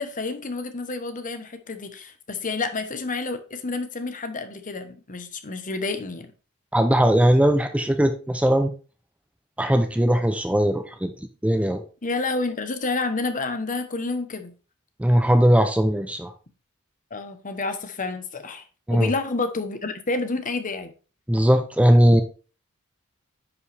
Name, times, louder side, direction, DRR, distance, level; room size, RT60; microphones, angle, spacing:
voice 1, 0.0-6.3 12.0-14.5 17.1-18.6 18.9-20.9, left 3 dB, 40° left, 1.1 m, -29 dB
voice 2, 6.7-8.7 9.6-11.1 11.4-11.8 15.0-16.3 18.9-19.1 21.3-22.2, equal, 5° right, 0.6 m, -19 dB
9.5 x 5.5 x 3.4 m
head